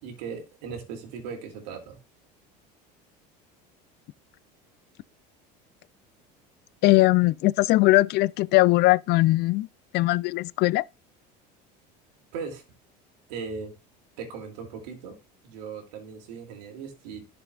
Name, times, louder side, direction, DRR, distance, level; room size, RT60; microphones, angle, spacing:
voice 1, 0.0-2.0 12.3-12.6 13.3-13.8 14.2-15.2 15.4-17.3, right 5 dB, 80° right, 2.7 m, -38 dB
voice 2, 6.8-9.7 9.9-10.8, left 19 dB, 55° left, 0.4 m, -20 dB
11.5 x 6.9 x 2.4 m
supercardioid pair, 100°, 21 cm